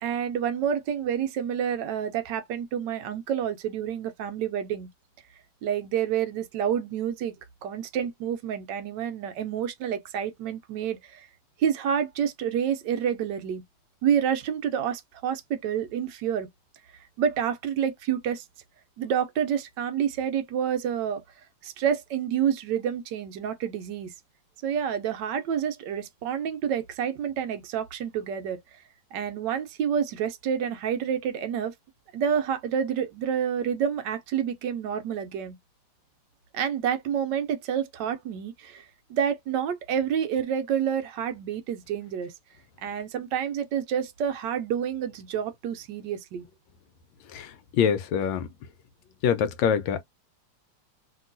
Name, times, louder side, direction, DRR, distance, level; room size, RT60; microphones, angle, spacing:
voice 1, 0.0-4.9 5.6-7.3 7.6-11.3 11.6-13.6 14.0-16.5 17.2-18.4 19.0-21.2 21.6-24.1 24.6-28.6 29.1-31.7 32.1-35.6 36.5-38.8 39.1-42.3 42.8-46.4, right 8 dB, 75° right, 1.2 m, -28 dB
voice 2, 47.3-48.5 49.2-50.0, left 7 dB, 85° left, 1.3 m, -25 dB
3.0 x 2.8 x 2.5 m
omnidirectional pair, 2.0 m